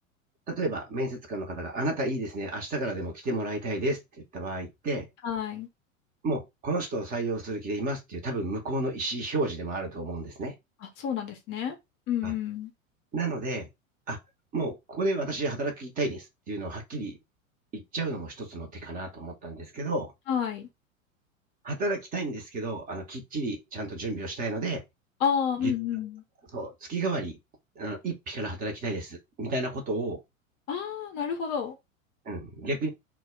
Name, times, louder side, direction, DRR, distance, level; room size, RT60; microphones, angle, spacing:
voice 1, 0.5-5.1 6.2-10.5 12.2-12.3 13.1-13.7 14.1-14.2 14.5-17.2 17.7-20.1 21.6-24.8 25.6-25.7 26.5-27.4 27.8-30.2 32.2-32.9, right 2 dB, 20° right, 0.6 m, -32 dB
voice 2, 5.2-5.7 10.8-11.8 12.1-12.7 20.3-20.7 25.2-26.2 30.7-31.8, left 8 dB, 25° left, 0.5 m, -30 dB
2.1 x 2.0 x 3.6 m
figure-of-eight pair, 90°, 41 cm